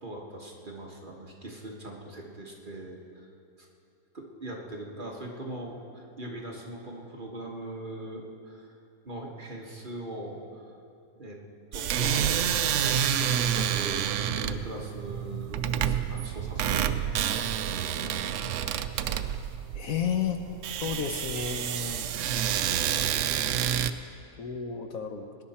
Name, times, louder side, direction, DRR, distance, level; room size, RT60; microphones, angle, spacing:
voice 1, 0.0-3.3 3.6-3.7 4.1-8.7 9.0-10.6 11.2-11.4 11.7-18.3, right 1 dB, 30° right, -1 dB, 1.5 m, -41 dB
sound 1, 11.7-23.9, right 9 dB, 70° right, 0.7 m, -28 dB
voice 2, 19.7-20.4 20.8-22.1 24.4-25.3, left 7 dB, 65° left, 5 dB, 1.1 m, -31 dB
20.0 x 10.5 x 4.3 m, 2.6 s
omnidirectional pair, 1.7 m